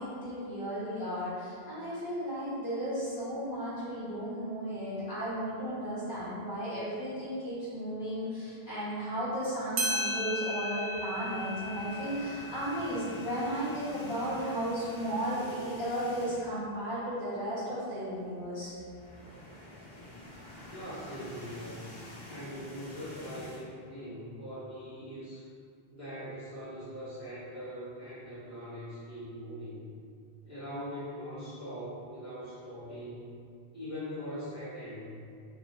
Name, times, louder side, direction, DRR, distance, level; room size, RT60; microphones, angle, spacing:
voice 1, 0.0-18.7, equal, 55° left, -13 dB, 1.3 m, -34 dB
sound 1, 9.4-9.5 9.8-14.9, equal, 75° right, 0.8 m, -37 dB
sound 2, 10.9-16.7 17.0-17.2 17.5-17.6 18.6-23.7, left 1 dB, 75° left, 1.0 m, -48 dB
voice 2, 20.7-21.8 22.3-25.4 25.9-29.9 30.4-33.4 33.7-35.1, equal, 20° right, -13 dB, 0.8 m, -41 dB
3.2 x 2.0 x 2.6 m, 2.3 s
omnidirectional pair, 1.0 m